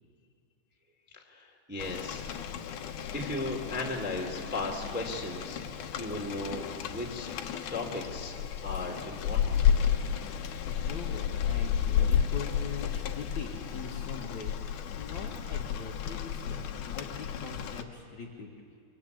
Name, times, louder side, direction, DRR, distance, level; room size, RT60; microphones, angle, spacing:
voice 1, 1.2-2.6 3.1-5.6 6.0-7.4 7.7-9.6, left 2 dB, 5° right, 0 dB, 1.9 m, -36 dB
Rain, 1.8-17.8, left 8 dB, 80° left, 1.7 m, -32 dB
voice 2, 10.6-18.5, left 4 dB, 50° left, -1 dB, 2.6 m, -42 dB
26.0 x 24.5 x 8.4 m, 2.3 s
omnidirectional pair, 5.4 m